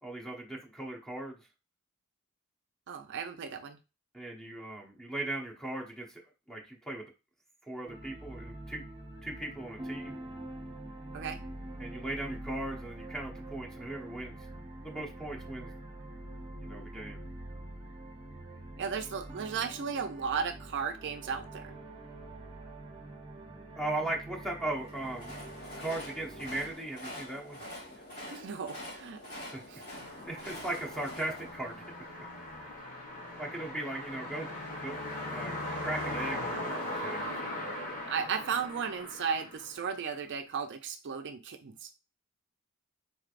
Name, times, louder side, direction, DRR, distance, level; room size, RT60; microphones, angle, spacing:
voice 1, 0.0-1.4 4.1-6.2 6.5-7.0 7.7-8.8 9.2-10.2 11.8-14.4 14.8-15.7 16.6-17.2 23.8-25.3 25.8-27.6 27.9-28.0 29.4-29.6 29.9-31.8 33.4-34.5 34.8-35.0 35.3-38.0, right 2 dB, 5° left, 1 dB, 0.8 m, -38 dB
voice 2, 2.9-3.8 11.1-11.4 18.8-21.8 28.3-29.2 29.7-29.8 38.1-41.9, right 6 dB, 55° right, 7 dB, 0.4 m, -35 dB
sound 1, 7.9-26.7, right 1 dB, 25° right, 0.7 m, -45 dB
Train, 24.7-32.8, left 1 dB, 55° left, 2.1 m, -46 dB
sound 2, 29.9-40.2, left 1 dB, 40° left, 1.2 m, -39 dB
4.1 x 3.2 x 2.4 m, 0.29 s
head